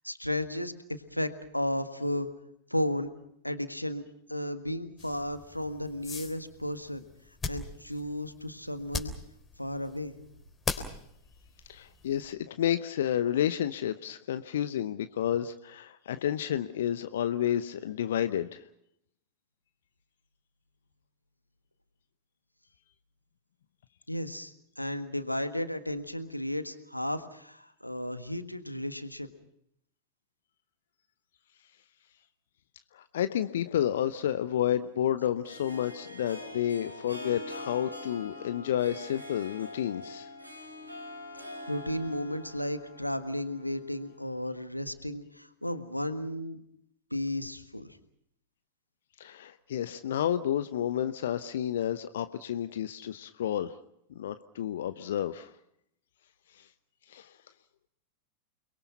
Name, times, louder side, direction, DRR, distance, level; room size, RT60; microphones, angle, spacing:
voice 1, 0.0-2.3 2.7-3.1 3.4-4.0 4.3-7.0 7.5-9.1 9.6-10.2 24.1-29.3 41.7-46.6 47.1-47.9, left 1 dB, 90° left, 9 dB, 1.6 m, -34 dB
sound 1, 5.0-12.3, left 4 dB, 15° left, 3.6 m, -41 dB
voice 2, 11.7-18.6 32.9-40.3 49.2-53.7 54.1-55.5 56.5-56.7 57.1-57.3, left 10 dB, 60° left, 11 dB, 0.9 m, -30 dB
Harp, 34.1-44.5, left 1 dB, 90° right, 4.2 m, -45 dB
29.5 x 22.0 x 5.8 m, 0.74 s
figure-of-eight pair, 90°, 0 cm